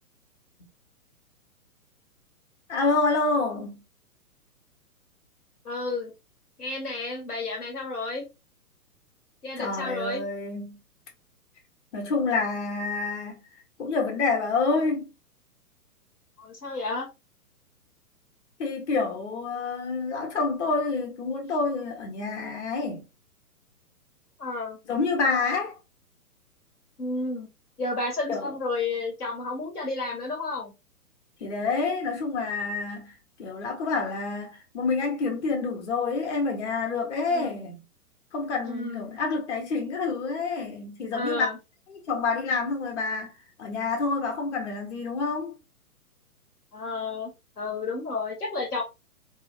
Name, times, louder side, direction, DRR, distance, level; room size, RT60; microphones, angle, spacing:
voice 1, 2.7-3.8 9.6-10.8 11.9-13.4 13.8-15.1 18.6-23.0 24.9-25.7 28.3-28.5 31.4-33.1 33.4-37.8 38.3-41.5 41.9-43.3 43.6-45.6, left 4 dB, 50° left, 1.0 m, -28 dB
voice 2, 5.6-6.1 6.6-8.2 9.4-10.2 16.4-17.1 24.4-24.8 27.0-27.5 27.8-30.7 37.3-37.6 38.6-39.2 41.1-41.6 46.7-48.8, left 3 dB, 85° left, 1.2 m, -31 dB
3.0 x 2.1 x 2.3 m
figure-of-eight pair, 120°, 45 cm